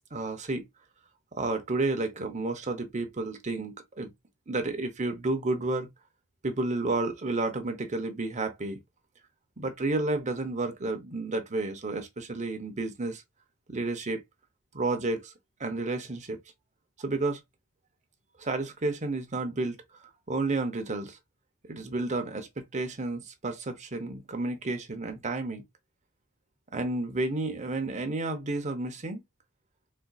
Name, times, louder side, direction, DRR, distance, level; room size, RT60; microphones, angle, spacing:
voice 1, 0.1-0.6 1.3-4.1 4.5-5.9 6.4-8.8 9.6-13.2 13.7-14.2 14.7-15.3 15.6-16.4 17.0-17.4 18.4-19.8 20.3-21.2 21.7-25.6 26.7-29.2, right 2 dB, 35° right, 0.8 m, -31 dB
4.3 x 2.5 x 2.3 m
head